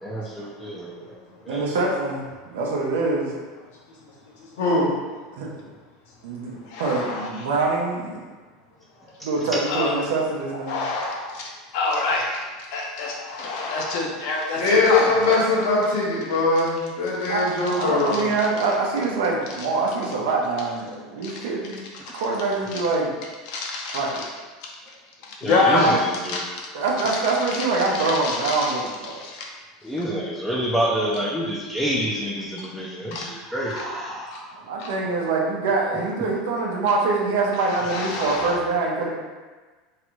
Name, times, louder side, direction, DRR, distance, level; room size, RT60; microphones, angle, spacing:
voice 1, 0.0-1.2 1.5-1.6 25.4-26.4 29.8-34.5 35.2-35.3, right 1 dB, 5° left, -6 dB, 0.4 m, -28 dB
voice 2, 1.5-2.2 2.5-3.4 5.4-5.6 6.2-8.2 9.2-10.8 17.3-21.8 22.1-23.1 23.9-24.2 25.5-26.0 26.7-29.1 34.6-39.1, right 3 dB, 90° right, -2 dB, 0.6 m, -24 dB
voice 3, 4.6-4.9 14.6-18.3, left 2 dB, 80° left, -5 dB, 1.0 m, -21 dB
voice 4, 6.6-7.5 9.7-10.0 10.7-12.4 12.7-15.4 18.1-18.2 21.2-21.4 22.7-22.8 23.5-24.3 24.6-24.7 25.2-26.6 27.0-27.2 27.5-28.8 29.1-29.5 33.1-33.3 33.8-33.9 34.3-34.4 34.8-34.9 37.6-38.6, left 3 dB, 60° left, -1 dB, 0.6 m, -27 dB
3.1 x 2.5 x 3.0 m, 1.3 s
supercardioid pair, 145°, 0 cm